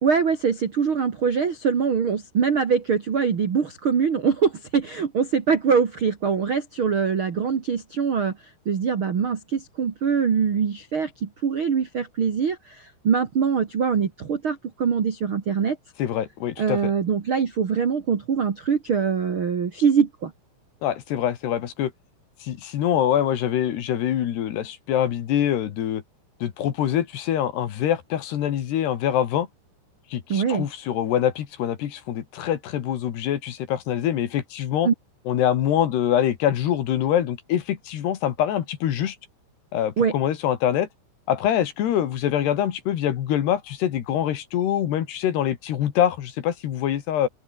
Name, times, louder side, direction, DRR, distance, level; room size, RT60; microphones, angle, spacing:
voice 1, 0.0-8.3 8.6-15.8 16.6-20.3 30.3-30.7 34.8-34.9 40.0-40.1, right 6 dB, 70° right, 1.2 m, -23 dB
voice 2, 16.0-16.9 20.8-21.9 22.4-26.0 26.4-29.5 30.1-34.9 35.3-39.2 39.7-40.9 41.3-47.3, left 10 dB, 65° left, 3.7 m, -24 dB
open air
omnidirectional pair, 5.6 m